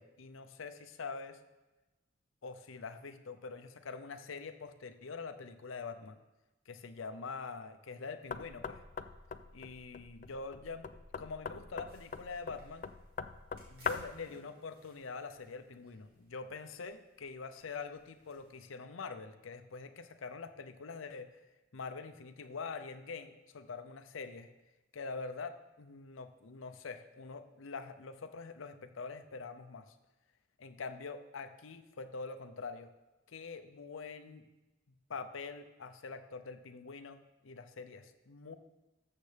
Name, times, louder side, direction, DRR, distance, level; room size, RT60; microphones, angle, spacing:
voice 1, 0.0-1.4 2.4-6.2 6.7-8.8 9.5-10.9 11.2-12.9 13.7-21.4 21.7-24.5 24.9-30.0 30.6-32.9 33.3-34.4 35.1-38.6, left 4 dB, 85° left, 9 dB, 0.6 m, -45 dB
Knock, 8.3-14.2, left 6 dB, 40° left, 0.3 m, -42 dB
sound 1, 11.9-18.6, right 1 dB, 50° right, 2.6 m, -65 dB
13.5 x 6.6 x 3.4 m, 1.1 s
head